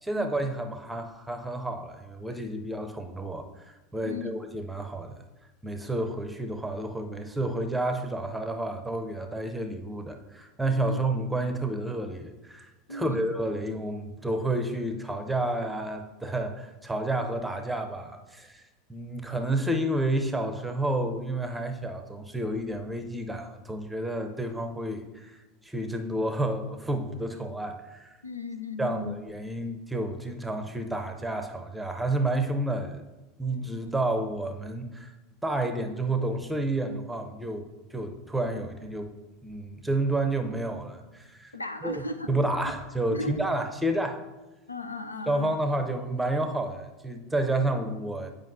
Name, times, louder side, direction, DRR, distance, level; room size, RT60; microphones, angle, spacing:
voice 1, 0.0-5.2 5.6-28.2 28.8-33.0 33.4-35.1 35.4-39.1 39.4-41.5 41.8-44.2 45.3-48.3, right 1 dB, 5° right, 6 dB, 0.7 m, -30 dB
voice 2, 12.9-13.3 28.2-29.2 41.5-42.5 43.1-43.5 44.7-45.6, left 2 dB, 90° left, 8 dB, 0.4 m, -35 dB
9.2 x 5.0 x 2.6 m, 1.1 s
figure-of-eight pair, 80°, 0 cm